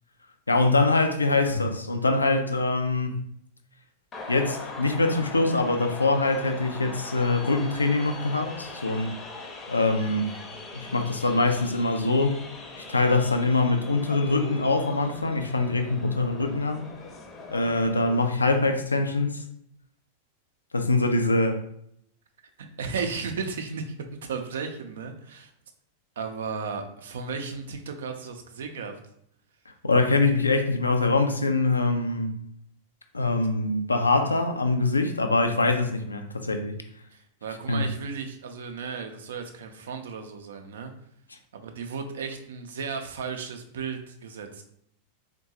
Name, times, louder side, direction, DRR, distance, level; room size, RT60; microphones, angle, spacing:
voice 1, 0.5-3.2 4.3-9.2 9.7-10.3 10.8-12.4 12.8-16.8 17.5-19.4 20.7-21.6 29.8-32.3 33.1-36.7 37.7-37.8, left 3 dB, 80° left, 0.3 m, -24 dB
sound 1, 4.1-18.3, left 3 dB, 25° left, 0.6 m, -41 dB
voice 2, 22.8-24.0 24.3-25.5 26.2-29.0 37.1-40.9 41.5-44.6, right 5 dB, 60° right, 0.4 m, -34 dB
3.7 x 2.2 x 2.7 m
figure-of-eight pair, 90°, 0 cm